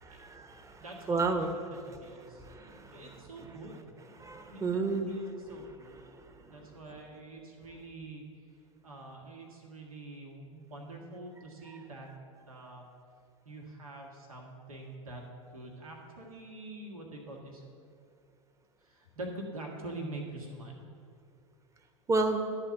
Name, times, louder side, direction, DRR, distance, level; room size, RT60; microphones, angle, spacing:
voice 1, 0.0-1.5 2.2-3.0 4.2-5.1 22.1-22.4, right 3 dB, 15° right, 6 dB, 1.0 m, -32 dB
voice 2, 0.8-2.4 2.9-3.9 4.5-6.0 6.5-8.2 8.8-12.1 12.5-12.8 13.4-15.2 15.5-17.6 18.8-20.7, right 2 dB, 85° right, 0 dB, 1.5 m, -45 dB
11.0 x 4.4 x 7.4 m, 2.4 s
hypercardioid pair, 90°, 18 cm